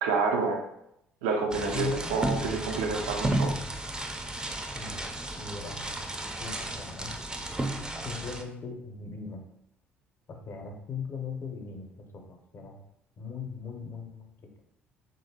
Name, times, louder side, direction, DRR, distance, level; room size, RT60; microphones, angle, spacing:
voice 1, 0.0-0.6 1.2-3.5, right 4 dB, 75° right, 3 dB, 0.5 m, -28 dB
sound 1, 1.5-8.4, right 1 dB, 15° right, 0.4 m, -33 dB
voice 2, 1.7-2.1 4.8-5.0 5.3-5.8 6.4-7.1 8.0-9.4 10.3-12.8 13.2-14.3, left 5 dB, 45° left, 3 dB, 0.6 m, -39 dB
3.1 x 2.6 x 2.8 m, 0.80 s
hypercardioid pair, 55°, 6 cm